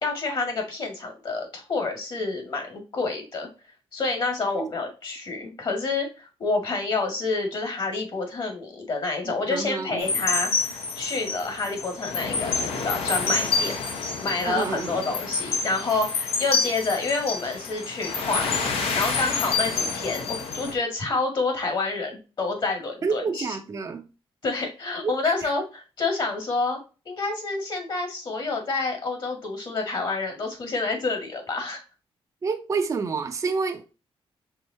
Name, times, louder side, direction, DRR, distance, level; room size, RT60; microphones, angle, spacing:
voice 1, 0.0-3.5 3.9-13.8 14.2-23.5 24.4-26.8 27.1-31.8, left 3 dB, 50° left, 1.9 m, -28 dB
voice 2, 9.2-10.2 14.4-15.1 23.0-24.1 25.0-25.1 25.4-25.5 32.4-33.8, right 5 dB, 30° right, 0.5 m, -29 dB
sound 1, 10.0-20.8, left 4 dB, 75° left, 1.0 m, -28 dB
4.8 x 3.5 x 2.7 m
cardioid pair, 115°, 10 cm